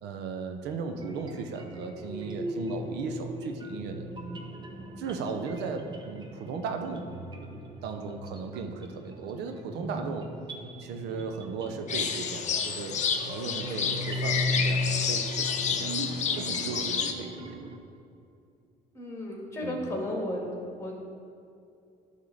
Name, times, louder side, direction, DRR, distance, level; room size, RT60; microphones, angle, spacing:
voice 1, 0.0-4.1 5.0-7.1 7.5-10.3 10.8-15.9 16.3-17.6 19.6-19.8, right 5 dB, 85° right, 5 dB, 0.7 m, -36 dB
sound 1, 1.0-17.8, left 1 dB, 25° right, 0.9 m, -37 dB
sound 2, 11.9-17.1, left 6 dB, 45° left, 0.7 m, -30 dB
voice 2, 18.9-20.4 20.7-20.9, left 1 dB, 15° left, -1 dB, 1.9 m, -33 dB
10.5 x 3.7 x 6.4 m, 2.5 s
cardioid pair, 110°, 17 cm